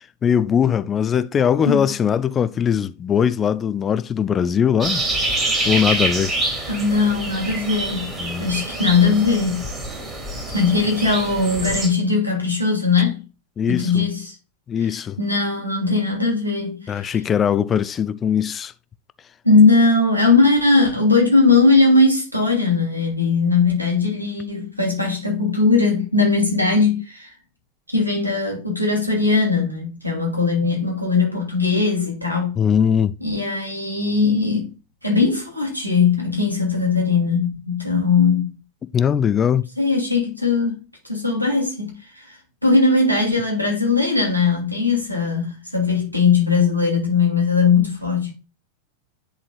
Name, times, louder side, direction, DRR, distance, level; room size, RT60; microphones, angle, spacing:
voice 1, 0.2-5.0 5.6-6.3 8.2-8.5 13.6-14.0 14.7-15.2 16.9-18.7 32.6-33.2 38.9-39.7, left 8 dB, 25° left, 0.4 m, -20 dB
sound 1, 4.8-11.9, right 2 dB, 20° right, 2.6 m, -26 dB
voice 2, 6.7-8.1 8.4-9.7 10.5-13.2 13.7-14.3 15.2-17.2 19.4-27.3 27.9-32.6 33.2-34.7 35.0-38.5 39.8-48.3, left 4 dB, 90° right, 2.5 m, -19 dB
10.5 x 4.2 x 2.4 m
figure-of-eight pair, 90°, 0 cm